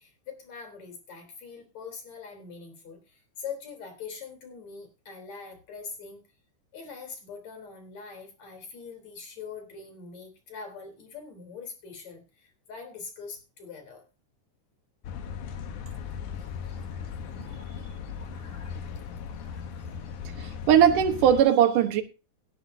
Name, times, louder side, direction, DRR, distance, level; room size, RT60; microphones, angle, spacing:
voice 1, 0.0-6.2 6.7-14.0 16.3-18.9 19.3-20.2 20.5-20.6, left 5 dB, 60° left, 5 dB, 4.9 m, -44 dB
sound 1, 15.0-21.4, left 7 dB, 75° left, 2.6 m, -38 dB
voice 2, 20.3-22.0, right 9 dB, 85° right, 7 dB, 2.9 m, -20 dB
18.0 x 11.5 x 2.8 m, 0.31 s
omnidirectional pair, 3.6 m